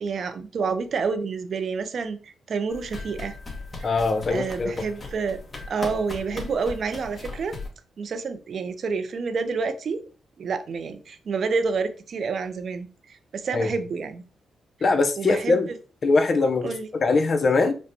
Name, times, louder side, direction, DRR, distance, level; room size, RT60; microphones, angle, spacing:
voice 1, 0.0-3.4 3.8-3.9 4.3-5.4 5.7-7.5 8.0-10.0 10.4-14.2 15.2-15.6 16.6-16.9, right 5 dB, 60° right, 0.5 m, -28 dB
sound 1, 2.7-7.7, left 2 dB, 35° left, 1.2 m, -38 dB
voice 2, 3.8-4.9 13.5-13.7 14.8-15.7 16.0-16.7 17.0-17.7, left 3 dB, 50° left, 0.6 m, -22 dB
5.2 x 2.2 x 2.7 m
cardioid pair, 70°, 0 cm